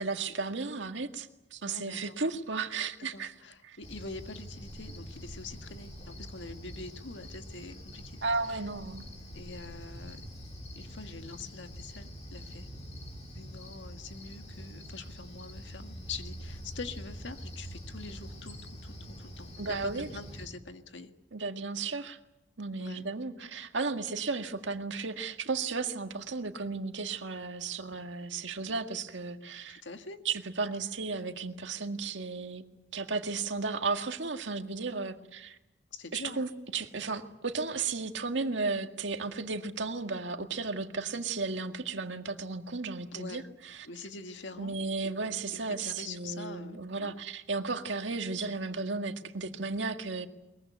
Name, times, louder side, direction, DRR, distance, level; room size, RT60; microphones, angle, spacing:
voice 1, 0.0-3.3 3.6-3.8 8.2-9.0 19.6-20.1 21.3-22.2 22.6-29.8 30.3-32.6 32.9-35.6 36.1-43.9 44.6-50.3, right 4 dB, 80° right, 6 dB, 1.8 m, -34 dB
voice 2, 1.6-2.2 3.1-8.2 8.5-8.6 9.3-10.2 10.8-12.7 13.4-18.6 18.8-21.1 22.8-23.0 29.7-30.2 35.9-36.4 43.1-43.4 43.8-44.8 45.5-47.2, left 3 dB, 80° left, 7 dB, 1.8 m, -44 dB
Cricket, 3.8-20.5, equal, 40° left, 5.4 m, -45 dB
22.0 x 22.0 x 9.4 m, 0.97 s
head